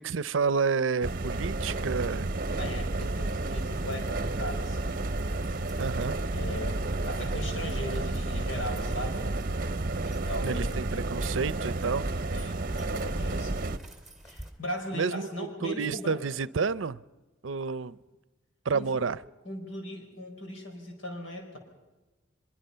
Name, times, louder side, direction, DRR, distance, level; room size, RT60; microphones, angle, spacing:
voice 1, 0.0-2.3 5.8-6.2 10.4-12.1 14.9-17.0 17.4-18.0 18.7-19.2, right 5 dB, 85° right, 0.6 m, -30 dB
sound 1, 1.0-13.8, right 2 dB, 45° right, 0.8 m, -31 dB
voice 2, 2.5-5.2 6.3-9.3 10.0-11.1 12.3-13.7 14.2-16.2 18.7-18.9 19.5-21.6, equal, 90° left, 5.2 m, -38 dB
sound 2, 3.0-14.5, equal, ahead, 2.7 m, -46 dB
23.5 x 22.5 x 5.6 m
head